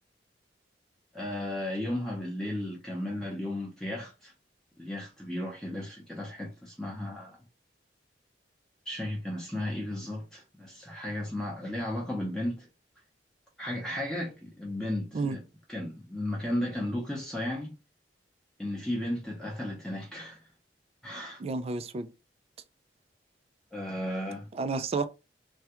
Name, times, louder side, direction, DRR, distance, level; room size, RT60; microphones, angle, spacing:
voice 1, 1.1-4.3 4.8-7.4 8.9-12.7 13.6-15.4 15.7-17.7 18.6-20.4 21.0-21.4 23.7-24.5, left 1 dB, 5° left, 0.6 m, -34 dB
voice 2, 21.4-22.1 24.5-25.1, right 3 dB, 35° right, 0.3 m, -31 dB
3.4 x 2.3 x 2.8 m
head